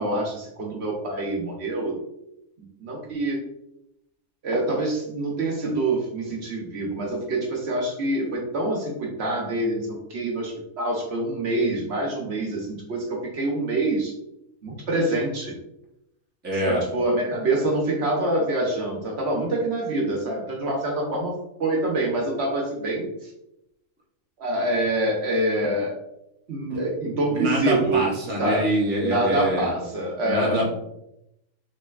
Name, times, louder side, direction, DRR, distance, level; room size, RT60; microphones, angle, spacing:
voice 1, 0.0-2.0 2.8-3.4 4.4-14.1 14.6-15.5 16.6-21.3 21.6-23.3 24.4-25.9 26.5-28.1 28.4-28.7 29.0-30.6, right 1 dB, 60° right, -1 dB, 1.0 m, -26 dB
voice 2, 16.4-16.8 26.7-26.8 27.3-29.7 30.2-30.7, right 1 dB, 10° right, -3 dB, 0.6 m, -25 dB
3.8 x 3.2 x 2.3 m, 0.84 s
omnidirectional pair, 1.4 m